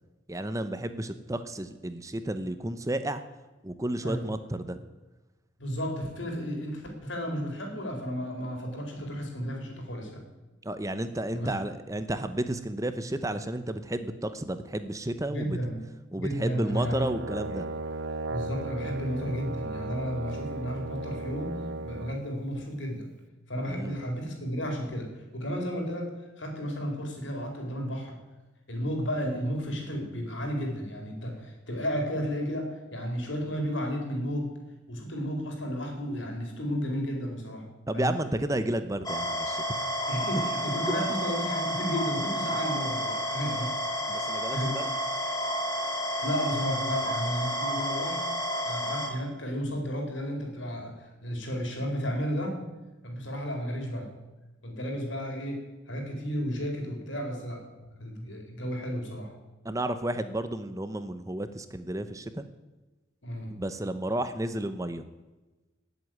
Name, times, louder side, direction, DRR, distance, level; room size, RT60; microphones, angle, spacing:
voice 1, 0.3-3.2 3.6-4.8 10.6-15.6 16.1-17.7 23.7-24.0 37.9-39.6 43.6-43.7 44.1-44.9 59.6-62.4 63.5-65.0, right 1 dB, 15° right, 10 dB, 0.8 m, -32 dB
voice 2, 5.6-10.2 11.3-11.5 15.3-15.8 16.1-17.1 18.3-23.1 23.5-28.2 28.7-34.6 34.9-37.7 37.9-38.1 40.0-43.7 44.5-44.8 46.2-48.3 48.6-52.6 53.0-54.1 54.6-59.3 63.2-63.5, equal, 75° left, 2 dB, 4.6 m, -33 dB
Brass instrument, 16.7-22.2, right 2 dB, 70° right, 0.9 m, -36 dB
sound 1, 39.0-49.1, equal, 20° left, 2.2 m, -31 dB
18.5 x 8.2 x 9.4 m, 1.1 s
head